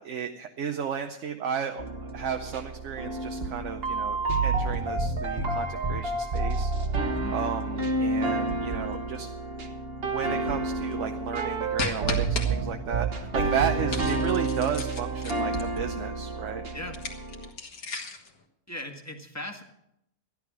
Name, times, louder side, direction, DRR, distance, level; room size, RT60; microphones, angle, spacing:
voice 1, 0.0-1.8 2.1-6.7 7.3-9.3 10.1-16.6, right 7 dB, 60° right, 6 dB, 1.0 m, -33 dB
sound 1, 1.8-17.5, right 3 dB, 40° right, 1.3 m, -29 dB
sound 2, 11.8-12.5 13.9-15.8 16.8-18.3, left 4 dB, 70° left, 2.0 m, -35 dB
voice 2, 18.7-19.6, left 1 dB, 10° left, 3 dB, 1.5 m, -38 dB
14.0 x 11.0 x 6.1 m, 0.80 s
omnidirectional pair, 1.6 m